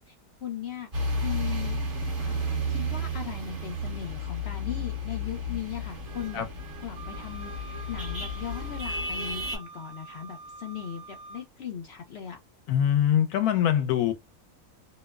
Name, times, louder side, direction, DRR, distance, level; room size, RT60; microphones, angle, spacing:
voice 1, 0.4-0.9 1.2-1.8 2.2-6.5 6.8-12.4, left 8 dB, 65° left, 0.6 m, -38 dB
sound 1, 0.9-9.6, equal, 40° right, 1.0 m, -32 dB
Wind instrument woodwind instrument, 6.9-11.5, right 2 dB, 80° right, 1.1 m, -46 dB
voice 2, 12.7-14.1, left 10 dB, 85° left, 1.1 m, -23 dB
2.8 x 2.0 x 2.2 m
omnidirectional pair, 1.6 m